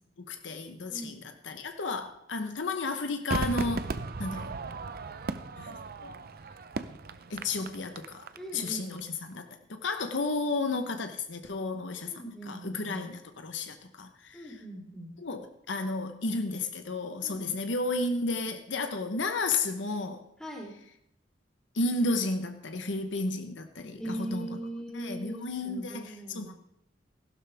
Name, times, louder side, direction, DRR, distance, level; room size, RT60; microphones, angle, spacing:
voice 1, 0.2-3.9 4.2-4.5 5.6-6.2 7.3-8.2 8.5-9.4 9.7-14.6 15.2-20.2 21.7-24.6 24.9-26.5, left 3 dB, 70° left, 6 dB, 1.0 m, -33 dB
Crowd / Fireworks, 3.3-8.7 9.0-9.1, right 3 dB, 55° right, 0.7 m, -36 dB
voice 2, 8.3-9.0 12.1-13.1 14.3-15.1 17.2-17.6 20.4-20.7 24.0-26.5, right 1 dB, 5° left, -2 dB, 3.3 m, -40 dB
16.0 x 12.0 x 3.5 m, 0.78 s
head